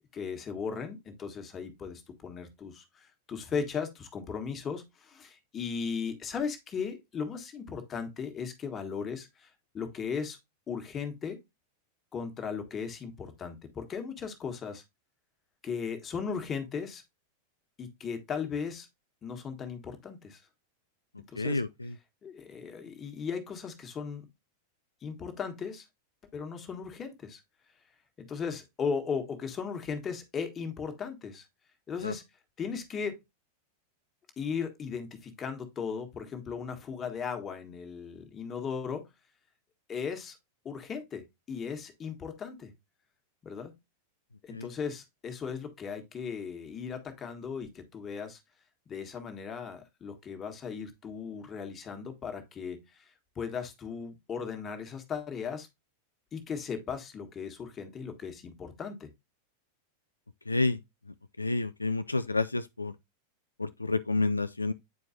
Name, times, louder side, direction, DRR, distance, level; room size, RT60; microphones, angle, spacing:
voice 1, 0.1-10.4 10.7-11.4 12.1-14.8 15.6-17.0 17.8-18.9 19.2-20.4 21.3-21.6 22.2-24.3 25.0-25.8 26.3-27.4 28.2-31.5 31.9-32.2 32.6-33.2 34.4-39.1 39.9-40.4 40.6-42.7 43.4-43.7 44.4-48.4 48.9-55.7 56.3-59.1, left 6 dB, 25° left, 1.5 m, -37 dB
voice 2, 21.3-21.9 32.0-32.1 44.5-44.7 60.5-60.8 61.1-63.0 63.6-64.7, left 3 dB, 80° left, 0.3 m, -30 dB
9.1 x 4.5 x 2.7 m
figure-of-eight pair, 90°, 0 cm